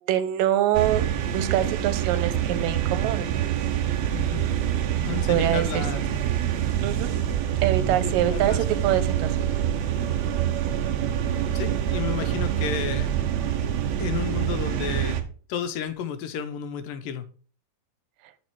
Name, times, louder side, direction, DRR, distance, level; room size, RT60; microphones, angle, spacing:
voice 1, 0.0-1.0 1.3-3.3 5.3-5.8 6.8-7.1 7.6-9.3, right 12 dB, 90° right, 12 dB, 2.5 m, -24 dB
sound 1, 0.7-15.2, right 10 dB, 65° right, 1.9 m, -26 dB
voice 2, 4.1-4.4 5.0-6.1 6.8-6.9 8.0-8.6 11.5-13.1 14.0-15.2 15.5-17.3, left 8 dB, 90° left, 9 dB, 2.6 m, -32 dB
7.6 x 6.5 x 4.6 m, 0.40 s
omnidirectional pair, 3.9 m